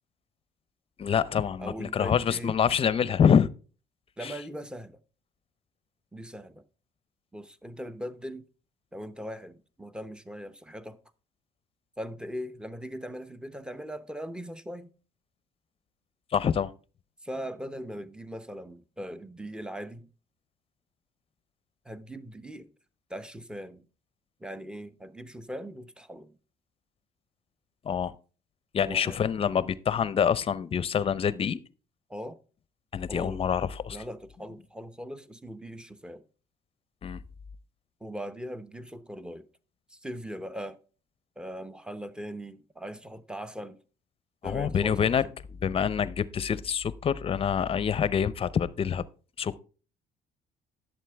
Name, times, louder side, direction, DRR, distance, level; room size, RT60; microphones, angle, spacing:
voice 1, 1.0-3.5 4.2-4.3 16.3-16.7 27.8-28.1 28.7-31.6 32.9-34.0 37.0-37.2 44.4-45.2 45.6-49.0 49.4-49.6, left 7 dB, 35° left, 0.6 m, -26 dB
voice 2, 1.6-2.5 4.2-5.0 6.1-6.6 7.3-8.5 8.9-11.0 12.0-14.9 17.2-20.1 21.8-22.7 23.1-23.9 24.4-26.4 28.8-29.2 32.1-32.4 33.1-33.4 33.9-36.2 38.0-39.5 39.9-40.8 41.4-43.8 44.4-45.1, equal, 5° right, 0.7 m, -40 dB
11.0 x 7.7 x 3.4 m
cardioid pair, 110°, 17 cm